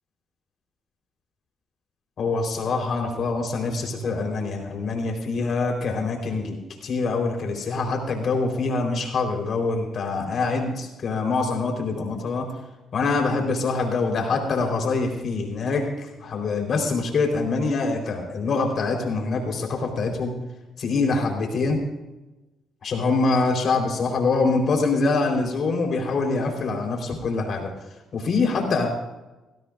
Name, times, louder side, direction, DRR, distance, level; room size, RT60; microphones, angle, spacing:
voice 1, 2.2-12.5 12.9-20.3 20.8-21.8 22.8-27.7 28.1-28.9, left 3 dB, 55° left, 2 dB, 4.1 m, -24 dB
20.5 x 16.0 x 2.6 m, 1.1 s
cardioid pair, 90°, 0 cm